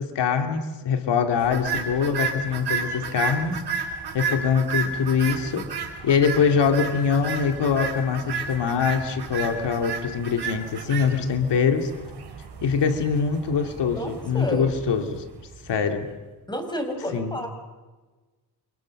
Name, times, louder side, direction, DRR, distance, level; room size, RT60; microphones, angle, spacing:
voice 1, 0.0-3.6 4.1-5.7 6.0-11.9 12.6-15.2 15.7-16.1 17.1-17.5, left 6 dB, 90° left, 6 dB, 2.6 m, -23 dB
sound 1, 1.4-15.8, right 5 dB, 70° right, 5.0 m, -32 dB
voice 2, 14.0-14.7 16.5-17.5, equal, 10° left, 5 dB, 6.4 m, -30 dB
29.5 x 26.5 x 6.5 m, 1.2 s
cardioid pair, 90°, 41 cm